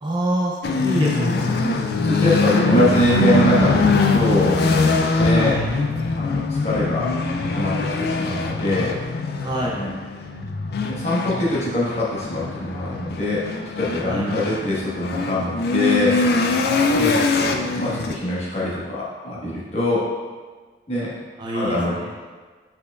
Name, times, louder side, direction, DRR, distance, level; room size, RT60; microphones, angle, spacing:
voice 1, 0.0-1.6 2.4-3.4 5.3-5.7 9.4-9.8 14.0-14.3 21.4-22.1, right 1 dB, 25° right, -3 dB, 0.4 m, -27 dB
sound 1, 0.6-18.2, left 3 dB, 55° left, 0.3 m, -22 dB
voice 2, 2.0-4.6 5.1-5.8 6.1-7.2 7.5-9.0 9.7-9.9 10.8-13.5 13.8-16.2 17.0-17.3 17.8-20.1 20.9-21.1 21.5-21.9, left 1 dB, 35° left, -7 dB, 1.2 m, -23 dB
5.3 x 4.3 x 2.3 m, 1.4 s
head